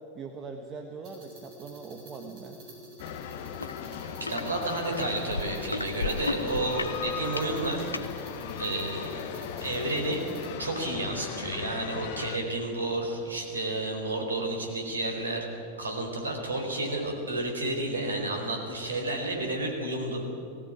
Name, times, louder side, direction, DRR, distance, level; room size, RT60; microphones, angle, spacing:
voice 1, 0.1-2.6, right 4 dB, 25° right, 4 dB, 1.5 m, -41 dB
sound 1, 1.0-10.5, right 1 dB, 45° right, 7.2 m, -48 dB
sound 2, 3.0-12.4, left 8 dB, 50° left, 1.2 m, -38 dB
sound 3, 3.6-3.7 4.1-4.4 5.0-8.1 8.8-8.9, left 3 dB, 80° left, 0.9 m, -33 dB
voice 2, 4.0-10.2 10.6-20.3, right 2 dB, 75° right, 2 dB, 4.3 m, -31 dB
19.5 x 16.0 x 8.8 m, 2.5 s
figure-of-eight pair, 90°, 0 cm